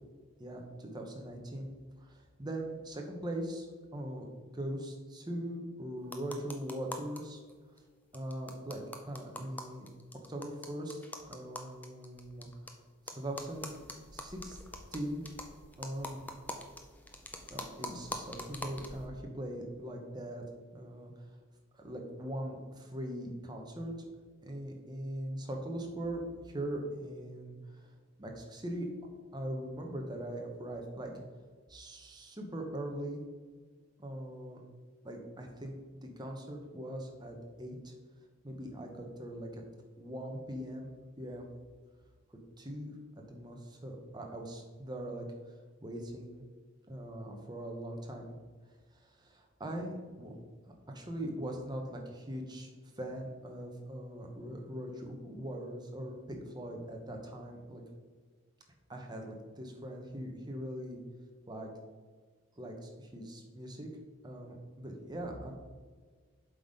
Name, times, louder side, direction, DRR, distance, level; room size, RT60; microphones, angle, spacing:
voice 1, 0.4-1.7 2.0-3.7 3.9-4.3 4.5-7.4 8.1-9.9 10.3-11.0 11.3-12.8 13.1-13.8 14.1-14.6 14.9-15.3 15.8-16.2 17.5-20.4 20.7-21.3 21.7-23.9 24.4-27.9 28.2-28.9 29.3-31.1 31.7-33.2 34.0-34.6 35.0-37.9 38.4-39.6 40.0-40.9 41.2-41.5 42.3-45.2 45.8-46.4 46.9-48.3 48.9-57.8 58.9-61.0 61.5-61.7 62.6-63.9 64.2-65.5, right 1 dB, 20° right, 2 dB, 1.0 m, -41 dB
sound 1, 6.0-7.2 7.5-7.6 7.8-7.9 8.1-12.7 13.1-19.1, left 1 dB, 10° left, 0.5 m, -44 dB
7.7 x 4.1 x 5.0 m, 1.5 s
head